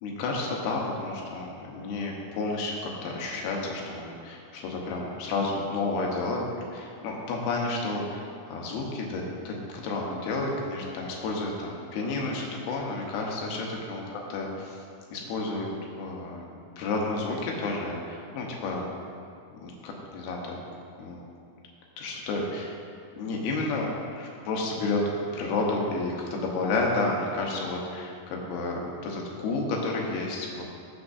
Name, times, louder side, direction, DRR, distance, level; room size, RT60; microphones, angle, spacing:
voice 1, 0.0-6.4 6.7-14.8 15.1-15.7 16.0-16.4 16.8-18.8 19.5-20.6 21.0-21.2 22.0-22.7 23.2-23.9 24.2-25.0 25.3-30.6, left 3 dB, 80° left, -1 dB, 3.1 m, -31 dB
14.0 x 6.7 x 2.7 m, 2.4 s
omnidirectional pair, 4.5 m